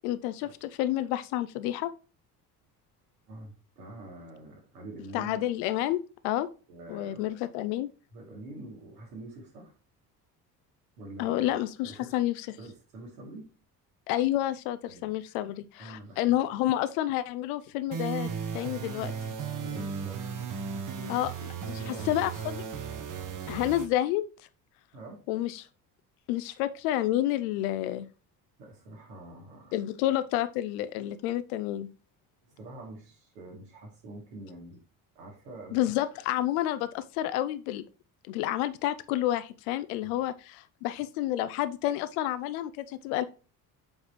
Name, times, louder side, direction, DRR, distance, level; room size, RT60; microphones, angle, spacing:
voice 1, 0.0-1.9 5.1-6.0 6.2-6.5 6.9-7.9 11.2-12.6 14.1-18.3 18.5-19.1 21.1-21.3 21.6-22.6 23.5-24.2 25.3-25.7 26.3-28.1 29.7-31.9 35.7-37.8 38.3-43.2, left 13 dB, 60° left, 0.7 m, -29 dB
voice 2, 3.3-5.4 6.7-7.3 8.1-9.7 11.0-12.2 12.6-13.6 14.9-15.1 15.8-16.4 19.6-21.3 21.8-22.2 24.9-25.2 28.6-29.7 32.5-34.8 35.1-35.9 40.1-40.3, right 2 dB, 70° right, 2.7 m, -46 dB
sound 1, 17.9-23.9, right 6 dB, 40° right, 1.3 m, -36 dB
7.4 x 4.8 x 3.0 m
figure-of-eight pair, 55°, 49 cm